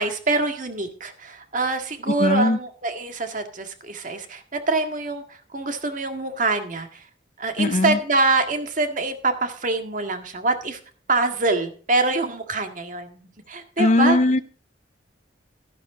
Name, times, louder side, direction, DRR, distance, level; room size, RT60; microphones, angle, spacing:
voice 1, 0.0-7.0 7.4-10.8 11.1-13.2 13.5-14.2, right 3 dB, 45° right, 1.8 m, -25 dB
voice 2, 2.1-2.6 7.6-8.0 13.8-14.4, left 2 dB, 40° left, 0.5 m, -19 dB
13.0 x 11.0 x 3.8 m
head